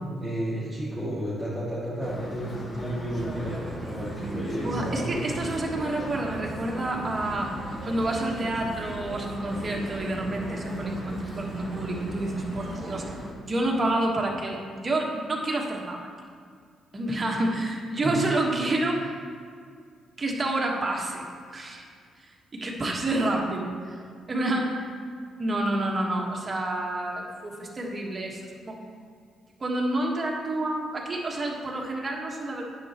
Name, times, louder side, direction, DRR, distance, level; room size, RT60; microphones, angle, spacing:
voice 1, 0.2-5.1 18.0-18.1, right 1 dB, 5° left, -11 dB, 2.1 m, -32 dB
sound 1, 2.0-13.3, left 1 dB, 35° left, 1.5 m, -38 dB
sound 2, 3.2-13.2, right 4 dB, 50° right, 0.4 m, -40 dB
voice 2, 4.6-7.6 7.9-13.1 13.4-16.1 16.9-19.1 20.2-21.2 21.5-21.9 22.2-24.0 24.3-24.9 25.4-28.8 29.6-32.6, right 1 dB, 30° right, 0 dB, 1.3 m, -29 dB
9.5 x 6.7 x 3.0 m, 2.1 s
cardioid pair, 90°, 0 cm